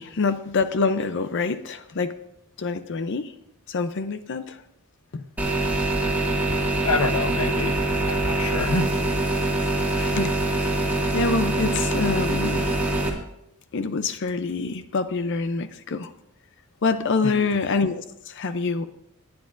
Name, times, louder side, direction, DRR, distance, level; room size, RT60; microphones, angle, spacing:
voice 1, 0.0-2.2 2.6-3.3 3.7-4.6 5.1-5.2 6.5-6.6 10.0-10.4 11.1-12.6 13.7-16.1 16.8-18.8, left 4 dB, 55° left, 11 dB, 0.6 m, -26 dB
machine-hum, 5.4-13.1, right 2 dB, 10° right, 2.0 m, -24 dB
voice 2, 6.8-7.8 8.0-8.9 17.2-17.5, left 3 dB, 75° left, 9 dB, 0.9 m, -27 dB
21.0 x 9.4 x 2.6 m, 0.78 s
head